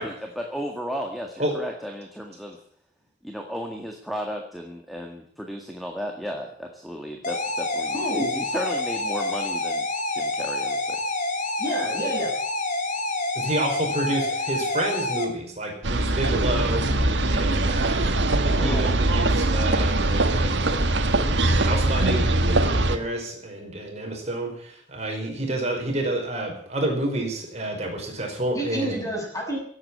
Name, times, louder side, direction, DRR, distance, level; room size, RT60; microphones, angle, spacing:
voice 1, 0.0-2.6 3.2-9.9 10.1-11.0, equal, ahead, 1 dB, 1.9 m, -34 dB
sound 1, 7.2-15.2, left 2 dB, 45° left, 2.7 m, -27 dB
voice 2, 7.9-8.3 11.6-12.4 18.5-18.9 28.5-29.6, equal, 20° left, 0 dB, 6.7 m, -29 dB
voice 3, 13.4-16.8 17.2-29.0, right 1 dB, 40° right, 1 dB, 5.3 m, -29 dB
sound 2, 15.8-23.0, right 2 dB, 80° right, 1.7 m, -22 dB
16.5 x 8.9 x 9.9 m, 0.63 s
head